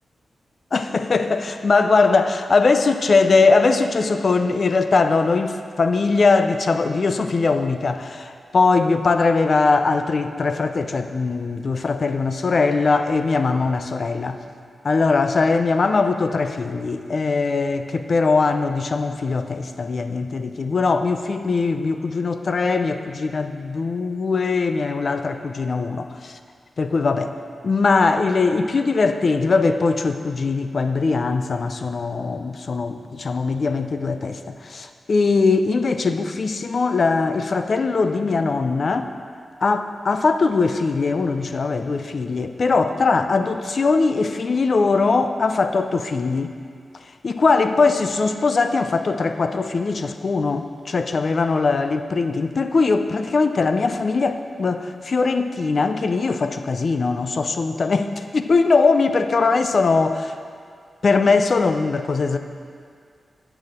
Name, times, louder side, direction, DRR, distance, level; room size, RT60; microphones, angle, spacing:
voice 1, 0.7-14.4 14.8-26.3 26.8-27.3 27.6-39.1 39.6-46.5 47.2-60.3 61.0-62.4, left 4 dB, 50° left, 8 dB, 0.4 m, -21 dB
9.8 x 7.0 x 4.2 m, 2.2 s
wide cardioid pair, 120°, 0 cm